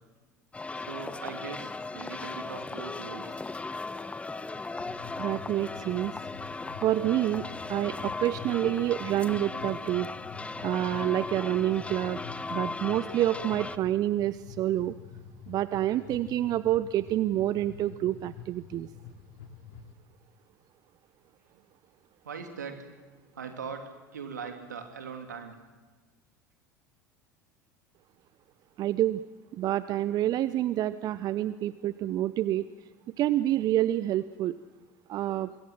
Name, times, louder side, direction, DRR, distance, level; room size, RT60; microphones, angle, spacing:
sound 1, 0.5-13.8, left 3 dB, 10° left, 1.0 m, -37 dB
voice 1, 0.7-3.4 22.2-22.9 23.3-25.6, right 6 dB, 75° right, 5 dB, 3.1 m, -40 dB
sound 2, 4.8-19.9, left 6 dB, 60° left, 2.7 m, -47 dB
voice 2, 5.2-6.1 6.8-7.4 7.7-10.1 10.6-12.2 12.5-14.9 15.5-18.9 28.8-29.2 29.5-32.6 33.2-34.6 35.1-35.5, right 13 dB, 40° right, 16 dB, 0.7 m, -28 dB
25.5 x 22.5 x 7.7 m, 1.3 s
figure-of-eight pair, 70°, 10 cm